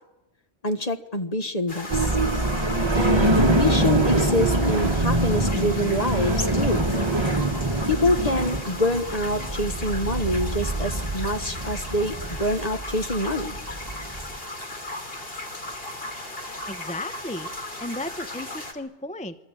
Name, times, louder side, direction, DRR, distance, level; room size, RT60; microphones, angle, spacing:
voice 1, 0.6-2.1 2.9-6.9 7.9-13.6, left 1 dB, 35° left, 8 dB, 1.4 m, -26 dB
sound 1, 1.7-18.7, left 2 dB, 50° left, 3.3 m, -37 dB
sound 2, 1.9-14.4, right 2 dB, 20° right, 1.4 m, -24 dB
voice 2, 16.7-17.5 17.8-19.4, left 1 dB, 5° left, 10 dB, 0.8 m, -34 dB
26.5 x 23.0 x 9.0 m, 0.99 s
omnidirectional pair, 1.3 m